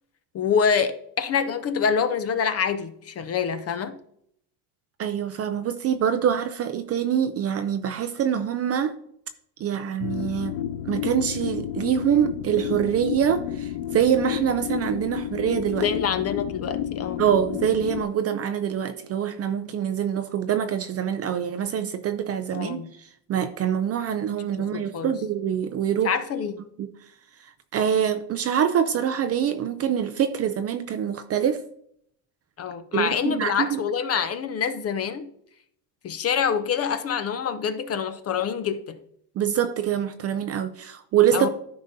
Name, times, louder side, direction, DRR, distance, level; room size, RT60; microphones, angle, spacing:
voice 1, 0.3-4.0 15.8-17.2 22.5-22.9 24.6-25.1 26.0-26.6 32.6-35.3 36.0-39.0 41.3-41.5, left 7 dB, 30° left, 0.4 m, -26 dB
voice 2, 5.0-8.9 9.6-10.5 10.9-15.9 17.2-26.1 26.8-26.9 27.4-31.6 32.9-33.8 39.4-41.5, right 9 dB, 35° right, 0.4 m, -25 dB
sound 1, 10.0-18.0, left 11 dB, 85° left, 0.6 m, -31 dB
13.0 x 5.3 x 2.6 m
cardioid pair, 125°, 50 cm